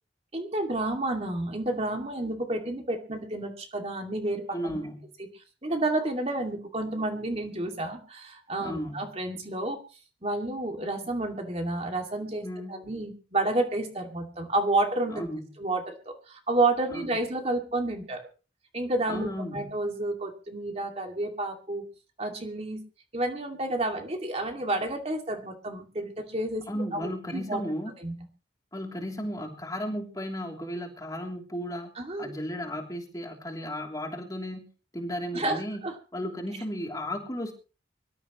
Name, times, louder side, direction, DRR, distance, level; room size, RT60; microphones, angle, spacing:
voice 1, 0.3-4.8 5.6-9.8 10.2-15.3 15.6-18.3 18.7-21.8 22.2-22.8 23.1-26.6 26.9-27.6 28.0-28.1 32.0-32.3 35.3-35.9, right 2 dB, 35° right, 3 dB, 2.5 m, -30 dB
voice 2, 4.5-5.0 8.6-9.0 12.4-12.8 15.1-15.5 16.9-17.2 19.1-19.7 26.7-27.9 28.7-31.9 32.2-34.7 34.9-35.8 36.1-37.5, equal, 20° left, 2 dB, 3.2 m, -34 dB
24.5 x 13.5 x 3.1 m, 0.35 s
head